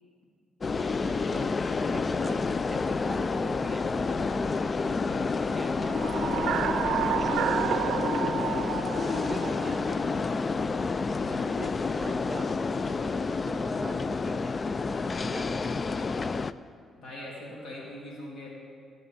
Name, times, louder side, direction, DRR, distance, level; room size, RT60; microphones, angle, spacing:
sound 1, 0.6-16.5, left 4 dB, 35° left, 0.3 m, -29 dB
sound 2, 1.0-14.5, left 4 dB, 55° left, 0.8 m, -46 dB
voice 1, 1.0-1.6 1.8-3.9 5.4-5.8 7.1-8.1 9.1-10.0 11.5-14.6 15.1-15.8, right 3 dB, 25° right, 7 dB, 0.7 m, -42 dB
sound 3, 5.7-10.4, right 9 dB, 80° right, 0.5 m, -31 dB
voice 2, 11.2-11.5 17.0-18.5, left 1 dB, 75° left, -4 dB, 3.2 m, -41 dB
18.0 x 7.6 x 4.2 m, 2.2 s
cardioid pair, 90°, 0 cm